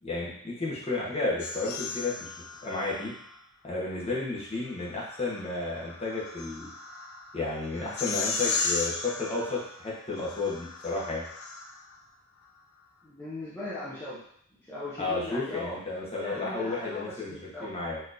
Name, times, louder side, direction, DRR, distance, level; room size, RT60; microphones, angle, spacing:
voice 1, 0.0-2.3 2.6-3.1 3.6-6.7 7.3-11.2 15.0-18.0, left 3 dB, 30° left, -6 dB, 1.0 m, -32 dB
sound 1, 1.4-3.4 4.8-12.0, left 4 dB, 70° left, 0.5 m, -36 dB
voice 2, 13.0-14.2 14.6-15.8 16.2-17.8, left 2 dB, 10° left, -10 dB, 0.7 m, -38 dB
4.2 x 2.9 x 2.6 m, 0.67 s
head